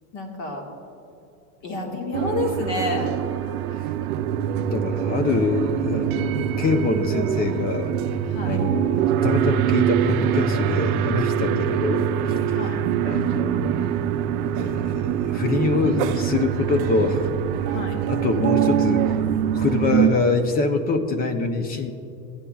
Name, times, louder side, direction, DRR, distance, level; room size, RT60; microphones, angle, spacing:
voice 1, 0.1-0.6 1.6-3.2 8.3-8.6 11.4-12.0 12.5-12.8 17.7-18.0, left 2 dB, 40° left, 2 dB, 1.7 m, -29 dB
sound 1, 2.1-20.1, right 9 dB, 70° right, 0.7 m, -24 dB
voice 2, 4.7-7.9 8.5-12.6 13.0-13.8 14.5-17.3 18.1-19.1 19.5-21.9, left 4 dB, 20° left, 8 dB, 0.6 m, -25 dB
15.5 x 10.0 x 2.3 m, 2.7 s
supercardioid pair, 135°, 44 cm